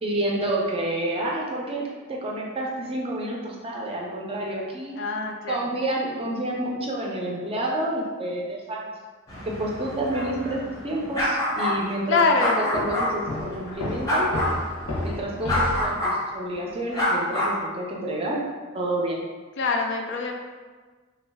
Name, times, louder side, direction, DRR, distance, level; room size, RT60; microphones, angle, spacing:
voice 1, 0.0-4.9 5.5-8.9 9.4-10.6 10.8-12.2 12.6-14.3 15.0-18.4 18.7-19.2, right 1 dB, 30° right, -2 dB, 0.5 m, -29 dB
voice 2, 4.9-5.6 12.1-12.6 15.4-15.7 19.6-20.3, left 4 dB, 60° left, 2 dB, 0.4 m, -24 dB
sound 1, 9.3-13.1 14.0-14.6 15.5-16.2 16.9-17.6, left 1 dB, 15° left, 0.6 m, -26 dB
Walk footsteps, 12.7-16.0, left 1 dB, 85° left, 0.8 m, -31 dB
3.0 x 2.3 x 3.4 m, 1.4 s
head